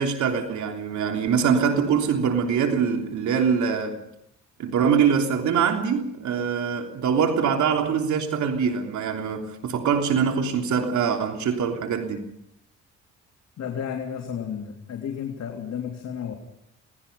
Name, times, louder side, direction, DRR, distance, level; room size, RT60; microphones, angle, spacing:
voice 1, 0.0-4.0 4.6-12.2, right 6 dB, 70° right, 3.3 m, -23 dB
voice 2, 13.6-16.3, left 8 dB, 60° left, 3.4 m, -32 dB
28.0 x 19.0 x 5.5 m
cardioid pair, 90°, 30 cm